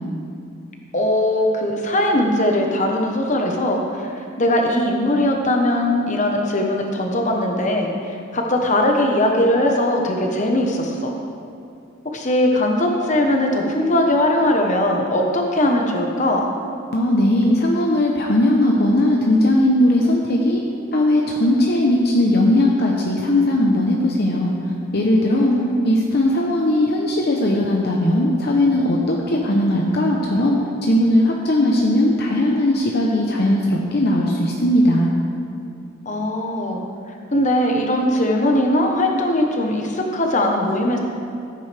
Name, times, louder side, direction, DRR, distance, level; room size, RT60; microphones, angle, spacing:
voice 1, 0.9-4.1 4.4-7.9 8.3-11.1 12.0-16.4 25.2-26.0 36.0-36.8 37.3-41.0, left 1 dB, 40° left, 1 dB, 1.2 m, -20 dB
voice 2, 16.9-20.6 20.9-24.5 24.9-25.5 25.8-35.1, left 1 dB, 55° left, -1 dB, 0.9 m, -18 dB
14.5 x 9.2 x 3.5 m, 2.4 s
head